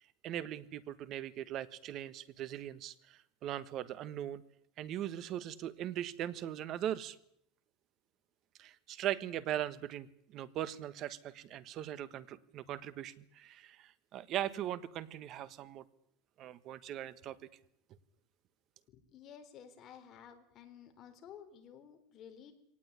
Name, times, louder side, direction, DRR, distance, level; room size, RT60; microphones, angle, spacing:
voice 1, 0.2-4.4 4.8-7.2 8.6-10.1 10.3-15.8 16.4-17.4, right 11 dB, 40° right, 15 dB, 1.4 m, -40 dB
voice 2, 18.9-22.5, left 8 dB, 35° left, 5 dB, 3.9 m, -53 dB
23.0 x 18.5 x 9.9 m, 0.71 s
supercardioid pair, 155°, 0 cm